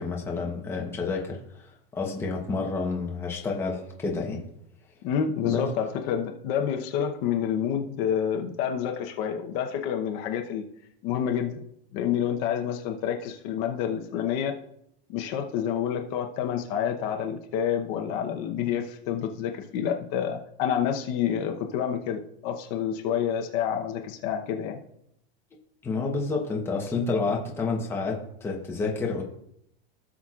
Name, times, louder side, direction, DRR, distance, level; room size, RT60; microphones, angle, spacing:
voice 1, 0.0-1.7 1.9-4.4 5.4-5.7 25.8-29.2, left 4 dB, 5° left, -1 dB, 0.9 m, -29 dB
voice 2, 5.0-10.6 11.0-11.6 11.9-14.5 15.1-24.8, left 8 dB, 40° left, 3 dB, 0.9 m, -28 dB
16.5 x 6.1 x 2.4 m, 0.74 s
supercardioid pair, 165°, 31 cm